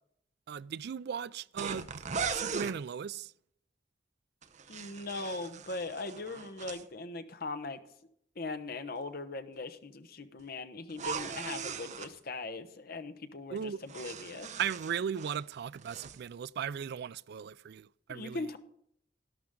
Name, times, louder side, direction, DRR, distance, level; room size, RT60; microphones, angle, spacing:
voice 1, 0.5-2.1 2.3-3.3 13.5-13.8 14.6-18.5, right 7 dB, 60° right, 0.4 m, -37 dB
sound 1, 1.6-2.8 4.4-6.8 10.9-12.1 13.6-15.4 15.7-16.2, right 6 dB, 40° right, 0.7 m, -39 dB
voice 2, 4.7-7.8 8.4-14.5 18.1-18.6, left 3 dB, 55° left, 1.0 m, -40 dB
12.0 x 12.0 x 3.8 m
head